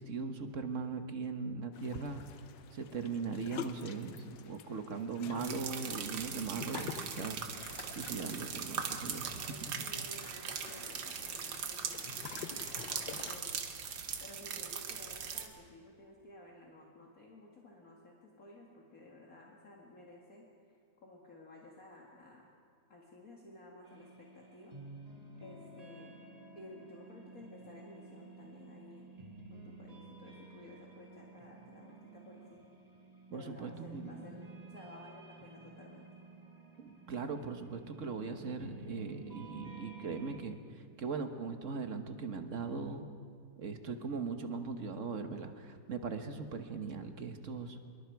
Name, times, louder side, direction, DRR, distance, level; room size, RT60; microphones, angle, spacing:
voice 1, 0.0-2.2 2.7-9.7 33.3-34.2 36.8-43.1 43.6-47.8, right 4 dB, 45° right, 7 dB, 1.4 m, -40 dB
sound 1, 1.7-13.4, left 8 dB, 85° left, 1.6 m, -48 dB
sound 2, 5.4-15.5, right 7 dB, 85° right, 2.0 m, -40 dB
voice 2, 9.1-12.2 12.9-13.6 14.2-20.4 21.0-22.5 22.9-24.7 25.4-26.2 26.5-29.1 29.5-32.7 33.3-36.1, left 2 dB, 50° left, -2 dB, 2.4 m, -54 dB
sound 3, 23.8-40.4, right 3 dB, 20° right, 1.8 m, -52 dB
25.0 x 22.0 x 4.7 m, 2.2 s
omnidirectional pair, 2.0 m